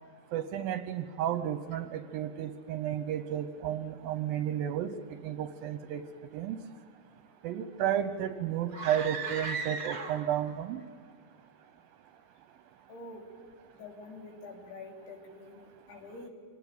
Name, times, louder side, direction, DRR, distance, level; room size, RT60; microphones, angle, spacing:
voice 1, 0.3-4.9 5.2-6.0 6.3-6.6 7.4-10.8, right 10 dB, 75° right, 10 dB, 2.3 m, -32 dB
sound 1, 8.7-10.5, right 4 dB, 60° right, 1.1 m, -37 dB
voice 2, 12.9-13.2 13.7-16.3, left 2 dB, 75° left, 1 dB, 5.0 m, -46 dB
24.5 x 19.0 x 9.1 m, 2.1 s
omnidirectional pair, 4.7 m